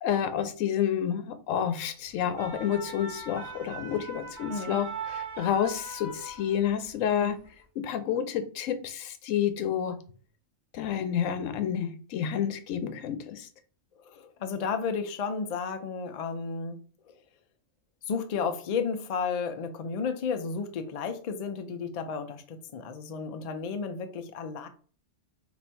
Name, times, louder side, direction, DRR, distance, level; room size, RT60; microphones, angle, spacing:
voice 1, 0.0-7.4 7.8-10.0 10.7-13.5, left 9 dB, 90° left, 1.0 m, -29 dB
sound 1, 2.1-6.9 7.2-7.5, right 3 dB, 70° right, 1.1 m, -40 dB
voice 2, 4.5-4.8 7.1-7.4 14.1-17.1 18.1-24.7, left 5 dB, 65° left, 0.4 m, -33 dB
2.9 x 2.6 x 4.3 m
omnidirectional pair, 1.3 m